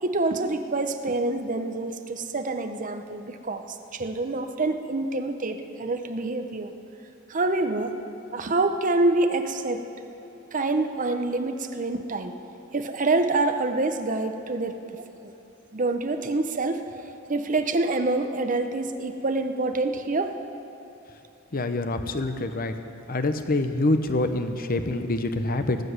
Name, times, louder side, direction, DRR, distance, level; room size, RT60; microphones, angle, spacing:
voice 1, 0.0-3.7 3.9-6.7 7.3-7.9 8.3-9.8 10.5-12.4 12.7-15.3 15.7-16.8 17.3-20.4, right 2 dB, 40° right, 7 dB, 0.8 m, -26 dB
voice 2, 21.5-22.7 23.1-25.8, left 2 dB, 45° left, 8 dB, 0.9 m, -26 dB
18.5 x 7.8 x 8.0 m, 2.9 s
head